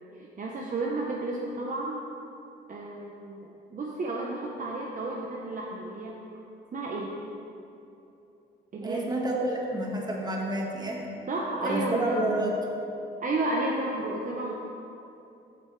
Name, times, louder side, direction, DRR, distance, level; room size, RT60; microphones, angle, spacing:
voice 1, 0.2-2.0 2.7-6.1 6.7-7.2 8.7-9.0 11.3-12.2 13.2-14.5, right 2 dB, 40° right, -2 dB, 0.9 m, -32 dB
voice 2, 8.8-11.0 11.6-12.5, right 1 dB, 20° right, -1 dB, 1.5 m, -29 dB
13.5 x 6.3 x 3.2 m, 2.8 s
cardioid pair, 90°, 20 cm